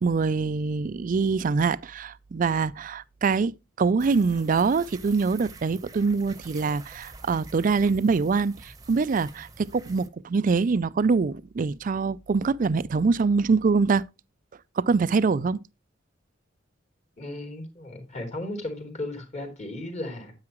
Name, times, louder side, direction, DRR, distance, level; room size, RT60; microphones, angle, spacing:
voice 1, 0.0-14.0 14.8-15.6, right 4 dB, 45° right, 0.4 m, -24 dB
sound 1, 4.0-10.1, right 3 dB, 20° right, 0.9 m, -47 dB
voice 2, 17.2-20.3, left 1 dB, 40° left, 3.0 m, -35 dB
9.6 x 8.7 x 3.0 m
head